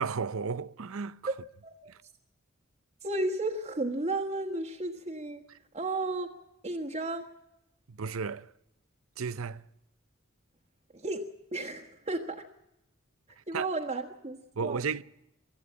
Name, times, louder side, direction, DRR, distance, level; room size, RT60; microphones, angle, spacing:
voice 1, 0.0-1.2 1.9-2.0 7.9-8.5 9.2-9.6 13.5-13.7 14.6-15.0, right 5 dB, 90° right, 0.7 m, -33 dB
voice 2, 3.0-5.4 5.7-6.3 6.6-7.2 10.9-11.2 11.5-12.4 13.5-14.9, right 2 dB, 30° right, 1.5 m, -33 dB
24.5 x 13.0 x 8.7 m
head